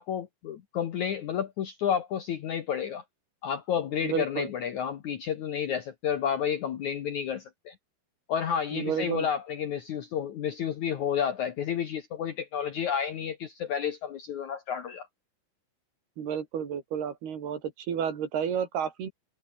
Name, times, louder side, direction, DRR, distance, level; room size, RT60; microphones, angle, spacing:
voice 1, 0.0-3.0 3.4-7.7 8.3-15.1, left 8 dB, 85° left, 1.7 m, -31 dB
voice 2, 4.0-4.5 8.7-9.3 16.2-19.1, right 8 dB, 55° right, 5.2 m, -31 dB
omnidirectional pair, 5.8 m